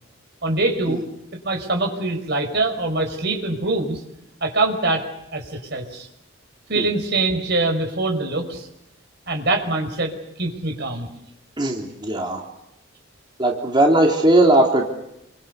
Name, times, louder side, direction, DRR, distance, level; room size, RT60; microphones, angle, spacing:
voice 1, 0.4-1.0 1.4-4.0 4.4-5.1 5.3-6.1 6.7-8.7 9.3-11.1, right 2 dB, 55° right, 4 dB, 5.4 m, -23 dB
voice 2, 11.6-12.4 13.4-14.9, right 1 dB, 25° right, 1 dB, 3.2 m, -18 dB
28.5 x 24.5 x 7.0 m, 0.82 s
head